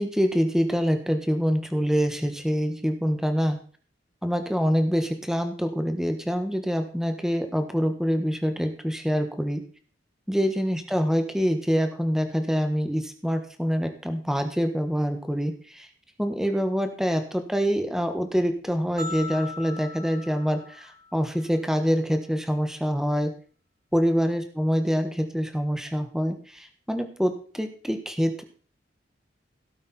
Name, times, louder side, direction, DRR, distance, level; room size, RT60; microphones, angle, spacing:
voice 1, 0.0-3.6 4.2-9.6 10.3-15.9 16.2-23.3 23.9-28.4, equal, 5° right, 7 dB, 1.5 m, -25 dB
sound 1, 19.0-21.3, left 3 dB, 50° right, 1.4 m, -39 dB
16.5 x 8.6 x 4.3 m, 0.42 s
head